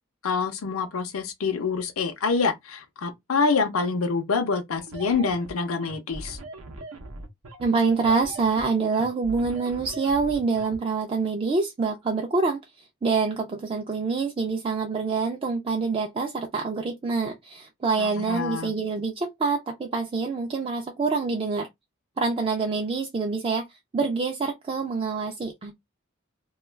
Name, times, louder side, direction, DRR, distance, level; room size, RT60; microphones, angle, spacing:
voice 1, 0.2-6.4 18.0-18.7, left 4 dB, 85° left, 0.5 m, -26 dB
sound 1, 4.8-10.8, right 2 dB, 80° right, 0.6 m, -41 dB
voice 2, 7.6-21.7 22.2-23.6 23.9-25.8, right 4 dB, 25° right, 0.3 m, -26 dB
2.2 x 2.2 x 3.1 m
head